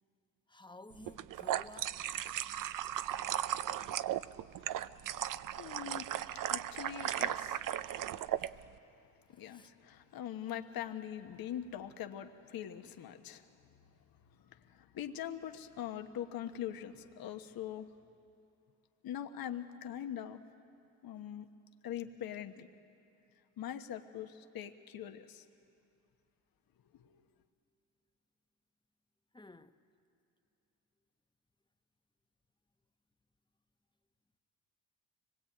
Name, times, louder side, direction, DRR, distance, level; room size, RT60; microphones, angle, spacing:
voice 1, 0.5-1.9 9.3-9.7 29.3-29.8, left 2 dB, 10° left, 1.1 m, -53 dB
sound 1, 1.0-8.5, right 12 dB, 55° right, 0.7 m, -36 dB
voice 2, 5.5-7.7 8.1-8.5 9.3-13.5 14.4-17.9 19.0-20.4 21.0-21.5 21.8-22.7 23.6-25.4 26.9-27.3, left 10 dB, 60° left, 1.3 m, -43 dB
25.0 x 20.0 x 8.8 m
supercardioid pair, 65°, 39 cm